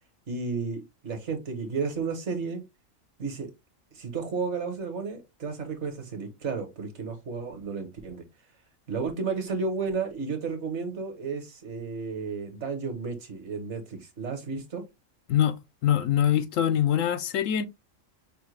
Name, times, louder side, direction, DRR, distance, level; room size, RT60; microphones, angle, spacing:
voice 1, 0.3-2.6 3.2-3.5 3.9-8.2 8.9-14.8, right 4 dB, 60° right, 1.3 m, -32 dB
voice 2, 15.8-17.7, left 10 dB, 75° left, 0.9 m, -23 dB
5.6 x 2.2 x 3.2 m
omnidirectional pair, 1.4 m